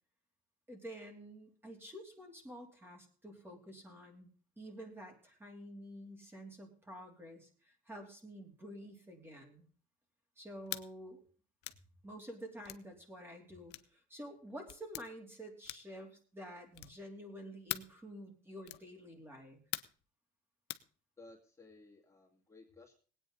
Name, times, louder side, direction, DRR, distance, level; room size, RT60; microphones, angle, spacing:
voice 1, 0.7-4.3 4.6-9.7 10.4-11.2 12.0-19.6, equal, 15° right, 2 dB, 2.9 m, -49 dB
sound 1, 10.7-10.9 11.6-11.8 12.6-12.9 13.7-13.9 14.7-15.1 15.6-16.0 16.7-17.0 17.7-18.0 18.6-18.9 19.7-20.0 20.7-20.9, left 17 dB, 85° left, 0.7 m, -42 dB
voice 2, 21.2-22.9, left 2 dB, 15° left, -2 dB, 2.4 m, -57 dB
19.5 x 9.1 x 3.9 m, 0.40 s
cardioid pair, 110°, 17 cm